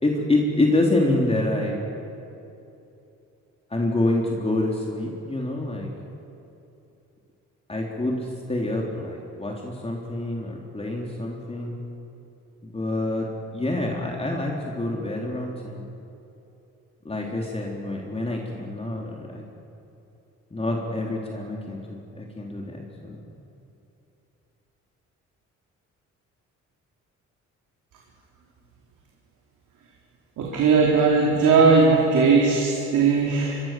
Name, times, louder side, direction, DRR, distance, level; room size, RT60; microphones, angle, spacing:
voice 1, 0.0-1.8 3.7-5.9 7.7-11.7 12.6-13.3 13.5-15.9 17.1-19.5 20.5-23.2, left 2 dB, 20° left, -1 dB, 3.6 m, -27 dB
voice 2, 30.4-33.6, right 4 dB, 80° right, -3 dB, 4.4 m, -18 dB
25.0 x 23.5 x 7.7 m, 2.8 s
cardioid pair, 90°, 30 cm